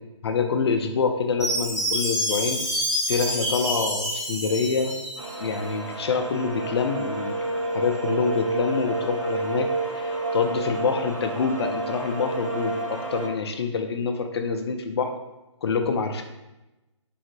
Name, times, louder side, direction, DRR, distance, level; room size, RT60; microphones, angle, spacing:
voice 1, 0.2-2.6 3.1-5.0 5.4-7.4 7.7-15.1 15.6-16.2, left 5 dB, 55° left, 6 dB, 0.4 m, -26 dB
Chime, 1.4-5.5, equal, 5° right, 1.2 m, -28 dB
sound 1, 5.2-13.3, right 2 dB, 80° right, 0.8 m, -30 dB
3.1 x 2.5 x 2.7 m, 1.0 s
figure-of-eight pair, 145°, 16 cm